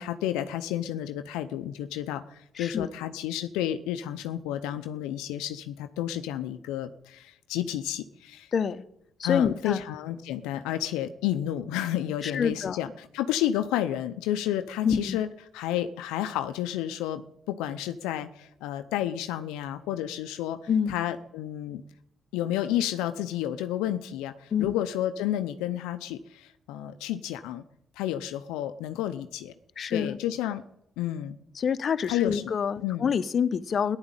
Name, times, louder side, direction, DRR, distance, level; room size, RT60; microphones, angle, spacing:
voice 1, 0.0-8.5 9.2-15.3 15.5-17.2 17.5-20.6 20.9-21.8 22.3-27.6 28.0-29.5 29.9-30.6 31.0-31.4 32.1-32.4 32.8-33.1, left 12 dB, 85° left, 9 dB, 0.7 m, -31 dB
voice 2, 2.6-2.9 8.5-8.8 9.2-9.8 12.2-12.8 14.8-15.2 20.7-20.9 24.5-24.7 29.8-30.2 31.6-34.0, left 7 dB, 55° left, 13 dB, 0.9 m, -27 dB
15.0 x 10.5 x 9.0 m, 0.79 s
supercardioid pair, 55°, 0 cm